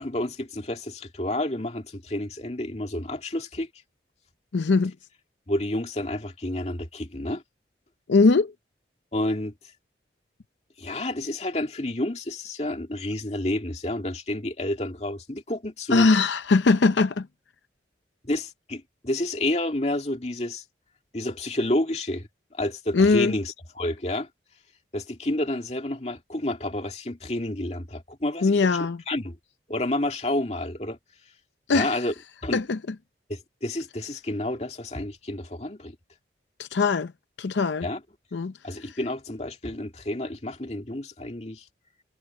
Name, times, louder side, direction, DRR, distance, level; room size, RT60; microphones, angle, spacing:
voice 1, 0.0-3.7 5.5-7.4 9.1-9.5 10.8-16.1 18.2-20.6 21.1-24.3 24.9-28.6 29.1-29.4 29.7-31.0 31.7-32.1 32.4-32.6 33.3-36.0 37.8-38.0 38.6-41.7, left 1 dB, 35° left, 2.4 m, -30 dB
voice 2, 4.5-4.9 8.1-8.5 15.9-17.3 22.9-23.4 28.4-29.0 31.7-32.0 32.5-32.8 36.6-37.1 37.4-37.9 38.3-38.5, left 4 dB, 85° left, 0.6 m, -21 dB
head